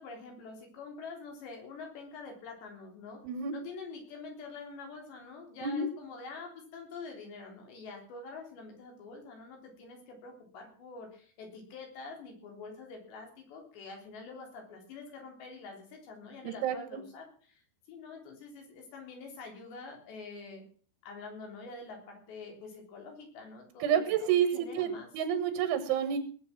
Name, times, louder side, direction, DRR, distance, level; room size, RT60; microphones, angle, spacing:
voice 1, 0.0-3.2 3.5-20.6 21.0-25.1, left 4 dB, 65° left, 3 dB, 5.7 m, -46 dB
voice 2, 3.2-3.6 5.6-5.9 16.4-16.8 23.8-26.2, right 8 dB, 90° right, 9 dB, 3.9 m, -29 dB
19.5 x 8.1 x 6.0 m, 0.43 s
omnidirectional pair, 5.4 m